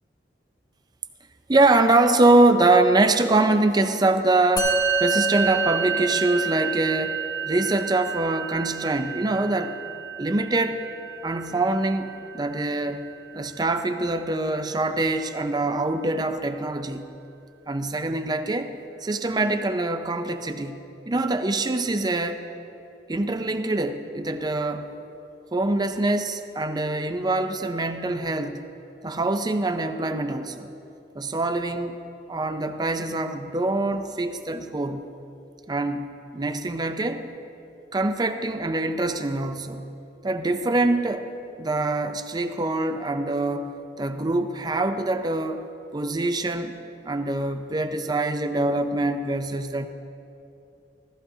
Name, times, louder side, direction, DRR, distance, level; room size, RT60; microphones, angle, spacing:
voice 1, 1.5-9.8 10.2-10.8 11.2-13.1 13.3-17.1 17.7-18.7 19.0-22.4 23.1-24.9 25.5-28.6 29.0-30.7 31.1-32.0 32.3-35.0 35.7-36.1 36.3-37.3 37.9-39.8 40.2-41.3 41.6-43.7 44.0-45.6 45.9-46.7 47.0-49.9, right 2 dB, 25° right, 8 dB, 0.5 m, -24 dB
Musical instrument, 4.6-14.1, right 5 dB, 25° left, 1.0 m, -29 dB
15.5 x 14.5 x 2.7 m, 2.7 s
head